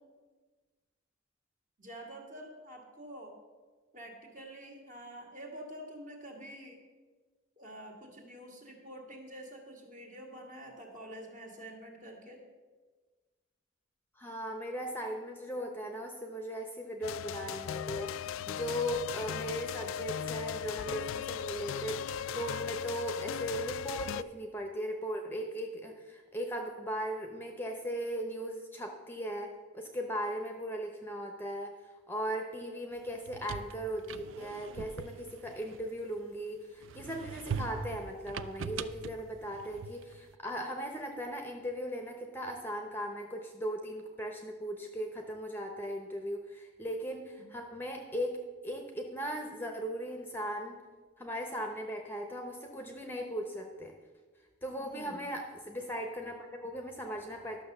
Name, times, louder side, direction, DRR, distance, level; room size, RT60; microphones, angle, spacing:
voice 1, 1.8-3.4 3.9-6.8 7.6-12.4 47.4-47.5 54.8-55.3, right 1 dB, 40° right, 1 dB, 1.9 m, -47 dB
voice 2, 14.2-31.7 32.1-50.8 51.2-53.9 54.6-57.6, equal, 10° left, 3 dB, 0.8 m, -38 dB
sound 1, 17.0-24.2, left 8 dB, 75° left, 0.3 m, -37 dB
sound 2, 33.1-36.3 36.8-40.2, right 6 dB, 70° right, 0.4 m, -42 dB
12.0 x 6.5 x 6.7 m, 1.4 s
head